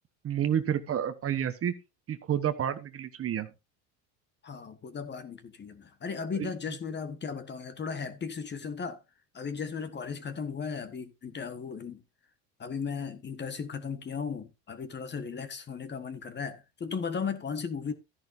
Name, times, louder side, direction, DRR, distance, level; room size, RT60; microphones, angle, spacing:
voice 1, 0.2-1.7 2.1-3.5 6.4-6.5, right 9 dB, 35° right, 1.2 m, -29 dB
voice 2, 4.4-9.0 9.3-12.0 12.6-17.9, left 6 dB, 30° left, 1.4 m, -36 dB
13.5 x 10.5 x 2.6 m
supercardioid pair, 110°, 37 cm